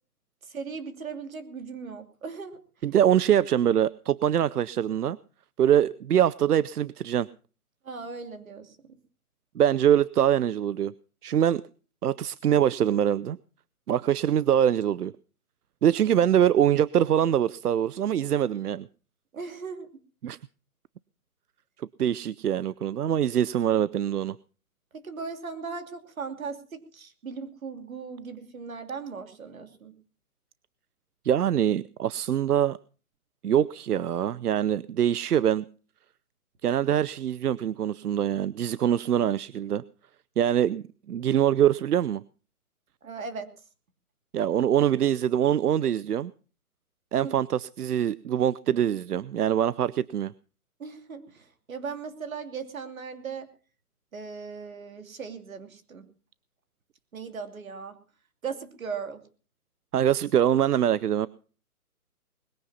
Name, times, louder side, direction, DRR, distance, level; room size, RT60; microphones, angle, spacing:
voice 1, 0.4-2.6 7.8-9.0 19.3-19.9 24.9-29.9 43.0-43.5 47.2-47.3 50.8-53.5 54.1-56.1 57.1-58.0 58.4-59.2, right 5 dB, 65° right, 8 dB, 3.0 m, -38 dB
voice 2, 2.8-5.2 5.6-7.3 9.6-10.9 11.2-11.6 12.0-13.4 13.9-15.1 15.8-18.9 20.2-20.4 22.0-24.4 31.2-32.8 33.4-35.6 36.6-39.8 40.4-42.2 44.3-46.3 47.1-50.3 59.9-61.3, right 10 dB, 90° right, 20 dB, 0.7 m, -24 dB
21.0 x 9.8 x 5.7 m, 0.39 s
hypercardioid pair, 170°, 45 cm